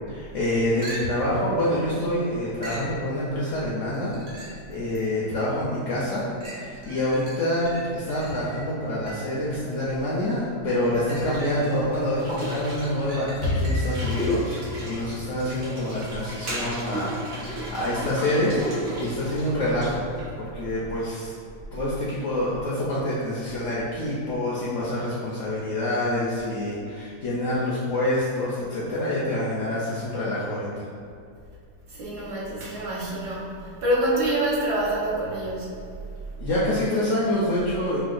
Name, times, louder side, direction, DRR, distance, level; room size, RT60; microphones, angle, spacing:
voice 1, 0.1-4.2 4.7-6.3 6.6-18.6 19.0-20.1 20.4-21.3 21.7-30.9 36.4-38.0, left 1 dB, 70° left, -8 dB, 0.7 m, -26 dB
sound 1, 0.8-1.4 2.6-3.0 3.9-4.7 5.3-5.4 6.4-9.4 10.7-12.0 12.4-14.1 17.8-17.9, right 1 dB, 55° right, 0.7 m, -41 dB
sound 2, 11.1-20.4, equal, 90° right, 1.4 m, -34 dB
sound 3, 13.4-16.5, left 2 dB, 90° left, 1.2 m, -30 dB
voice 2, 31.9-35.7, right 1 dB, 70° right, -7 dB, 1.4 m, -26 dB
4.5 x 2.1 x 2.4 m, 2.4 s
omnidirectional pair, 1.8 m